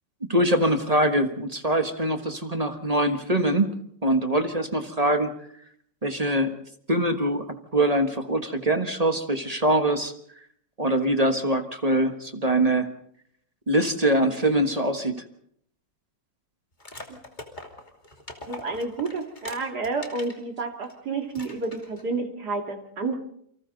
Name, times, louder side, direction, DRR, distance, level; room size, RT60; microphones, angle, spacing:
voice 1, 0.3-3.7 4.0-5.3 6.0-6.6 6.9-7.5 7.7-10.1 10.8-12.9 13.7-15.2, right 1 dB, 20° right, 7 dB, 1.2 m, -23 dB
sound 1, 16.8-20.4 20.8-20.9 21.3-22.1, left 1 dB, 25° left, 2.8 m, -42 dB
voice 2, 18.5-23.1, right 3 dB, 55° right, 3 dB, 3.1 m, -30 dB
28.5 x 25.0 x 4.0 m, 0.68 s
omnidirectional pair, 2.1 m